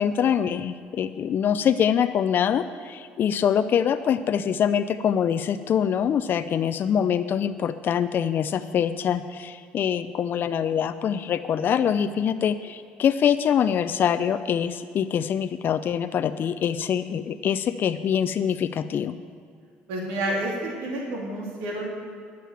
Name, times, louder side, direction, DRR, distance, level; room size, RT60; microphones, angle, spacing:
voice 1, 0.0-19.1, left 8 dB, 50° left, 10 dB, 0.5 m, -24 dB
voice 2, 19.9-21.8, right 1 dB, 85° right, -2 dB, 2.6 m, -29 dB
10.0 x 9.2 x 7.4 m, 2.3 s
supercardioid pair, 90°, 4 cm